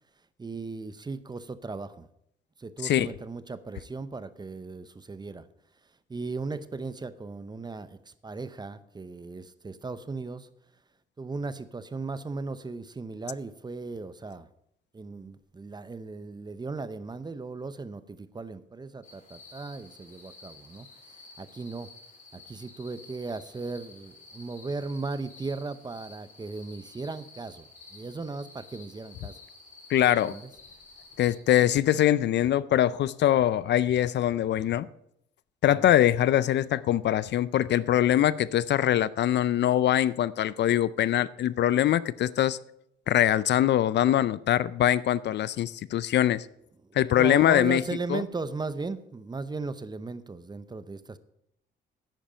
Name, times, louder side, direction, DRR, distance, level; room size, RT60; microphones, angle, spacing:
voice 1, 0.4-2.1 2.6-5.5 6.1-10.5 11.2-14.5 14.9-21.9 22.3-29.4 30.2-30.4 35.7-35.9 46.8-51.2, right 3 dB, 20° right, 0.7 m, -37 dB
sound 1, 19.0-31.4, left 3 dB, 40° left, 3.3 m, -51 dB
voice 2, 29.9-30.4 31.2-34.9 35.6-42.6 43.1-46.5 47.0-47.8 48.1-48.2, left 12 dB, 60° left, 0.4 m, -23 dB
10.0 x 9.1 x 5.0 m
cardioid pair, 90°, 20 cm